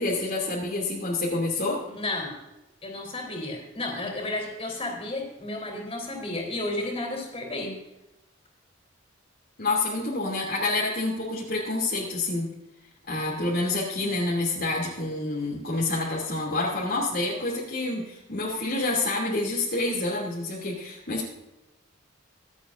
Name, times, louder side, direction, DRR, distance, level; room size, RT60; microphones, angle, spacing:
voice 1, 0.0-1.8 9.6-12.5 13.1-21.3, left 2 dB, 50° left, -4 dB, 2.7 m, -28 dB
voice 2, 1.9-2.3 2.8-7.7, left 2 dB, 30° left, 1 dB, 3.7 m, -32 dB
25.0 x 8.6 x 2.6 m, 0.95 s
head